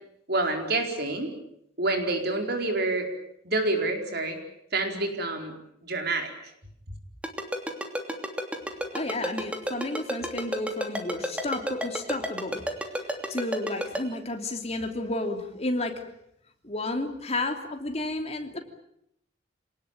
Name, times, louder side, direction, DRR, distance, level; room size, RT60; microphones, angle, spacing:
voice 1, 0.3-1.3 1.8-3.1 3.4-4.4 4.7-5.5 5.8-6.3, right 2 dB, 60° right, 4 dB, 4.5 m, -27 dB
Ringtone, 7.2-14.0, equal, 5° right, 3.0 m, -30 dB
voice 2, 8.9-12.6 13.3-16.0 16.6-18.6, left 2 dB, 35° left, 4 dB, 3.1 m, -31 dB
27.5 x 19.0 x 9.1 m, 0.76 s
head